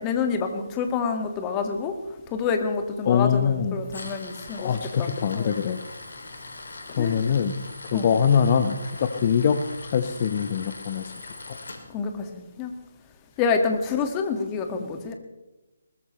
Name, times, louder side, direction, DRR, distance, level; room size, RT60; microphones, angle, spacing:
voice 1, 0.0-1.9 2.3-4.7 5.0-5.1 5.3-5.5 7.0-7.2 7.9-8.1 11.9-12.7 13.4-15.1, left 5 dB, 20° left, 6 dB, 1.8 m, -27 dB
voice 2, 3.1-3.8 4.6-5.8 6.9-9.6 9.9-11.1, left 7 dB, 35° left, 9 dB, 0.9 m, -23 dB
Tools, 3.8-11.8, left 2 dB, 65° left, 2.9 m, -41 dB
21.5 x 19.5 x 3.2 m, 1.0 s
figure-of-eight pair, 145°, 0 cm